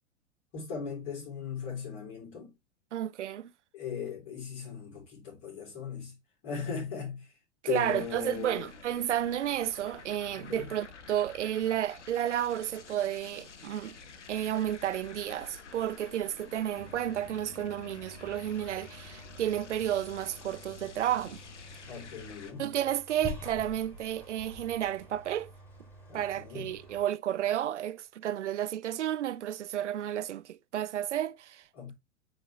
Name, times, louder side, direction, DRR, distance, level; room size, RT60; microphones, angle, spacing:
voice 1, 0.5-2.5 3.7-6.2 6.4-7.3 7.7-8.7 10.4-10.7 21.9-22.7 26.1-26.7 31.7-31.9, left 6 dB, 45° left, 3.6 m, -38 dB
voice 2, 2.9-3.5 7.7-14.0 14.3-21.4 22.6-25.5 26.1-31.9, right 11 dB, 80° right, 0.6 m, -32 dB
sound 1, 7.7-22.5, left 5 dB, 80° left, 1.1 m, -50 dB
sound 2, 16.7-27.0, left 1 dB, 5° left, 3.1 m, -48 dB
8.6 x 3.7 x 3.1 m
figure-of-eight pair, 100°, 35 cm